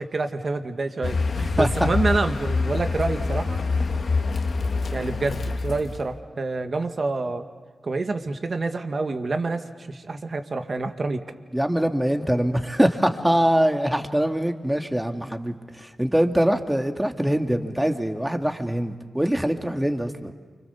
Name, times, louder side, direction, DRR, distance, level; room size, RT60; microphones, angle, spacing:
voice 1, 0.0-3.6 4.9-7.5 7.8-11.2, right 3 dB, 60° right, 7 dB, 1.9 m, -27 dB
Car, 1.0-6.2, left 3 dB, 70° left, 1.7 m, -26 dB
voice 2, 1.6-1.9 11.5-20.3, equal, 10° right, 5 dB, 2.2 m, -23 dB
29.5 x 25.5 x 7.2 m, 1.5 s
cardioid pair, 40°, 0 cm